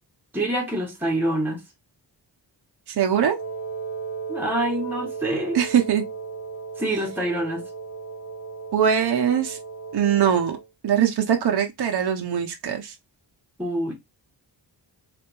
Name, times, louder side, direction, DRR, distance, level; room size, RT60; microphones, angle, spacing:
voice 1, 0.3-1.6 4.3-5.6 6.8-7.7 13.6-13.9, right 1 dB, 5° right, 1.2 m, -26 dB
voice 2, 2.9-3.3 5.5-6.0 8.7-9.6 9.9-10.6 10.8-12.9, right 8 dB, 60° right, 0.7 m, -21 dB
Wind instrument woodwind instrument, 3.3-10.7, right 5 dB, 40° left, 1.8 m, -35 dB
3.3 x 2.6 x 3.0 m
cardioid pair, 75°, 45 cm